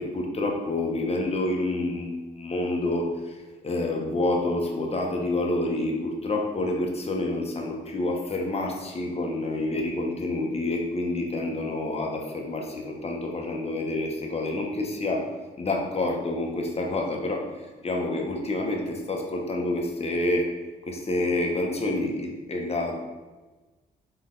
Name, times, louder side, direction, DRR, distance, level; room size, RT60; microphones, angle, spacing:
voice 1, 0.0-15.3 15.6-20.5 20.9-23.0, left 2 dB, 30° left, 1 dB, 1.0 m, -28 dB
3.8 x 3.3 x 3.8 m, 1.2 s
supercardioid pair, 55°, 19 cm